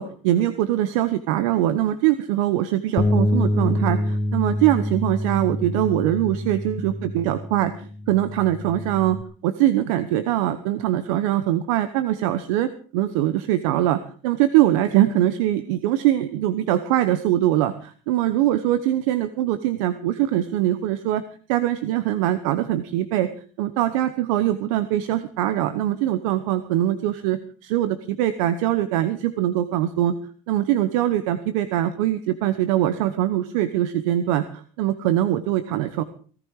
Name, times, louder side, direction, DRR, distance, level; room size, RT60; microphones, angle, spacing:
voice 1, 0.0-9.2 9.4-21.2 21.5-23.3 23.6-30.1 30.5-36.0, right 13 dB, 85° right, 12 dB, 1.1 m, -22 dB
Bass guitar, 3.0-9.2, left 1 dB, 25° left, 1.0 m, -26 dB
18.0 x 14.0 x 4.8 m, 0.41 s
supercardioid pair, 90°, 16 cm